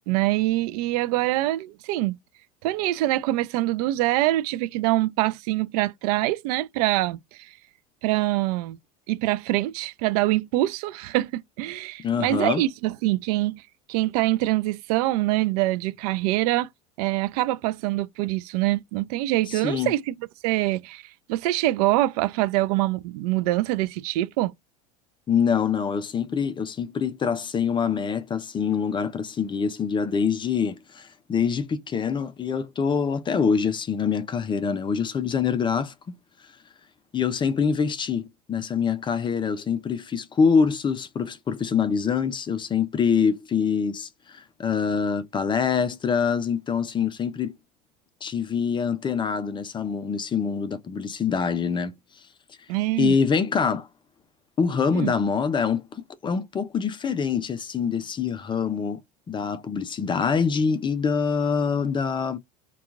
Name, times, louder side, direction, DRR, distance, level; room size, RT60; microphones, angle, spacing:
voice 1, 0.1-2.2 2.6-7.5 8.0-8.8 9.1-13.6 13.9-16.7 17.0-20.2 20.4-21.0 21.3-24.5 52.7-53.1 54.9-55.1, right 17 dB, 65° right, 0.4 m, -24 dB
voice 2, 12.0-12.6 19.5-20.0 25.3-36.2 37.1-47.5 48.2-51.9 53.0-53.9 54.6-59.0 59.3-62.4, left 6 dB, 20° left, 0.5 m, -25 dB
2.8 x 2.3 x 2.4 m
hypercardioid pair, 85°, 21 cm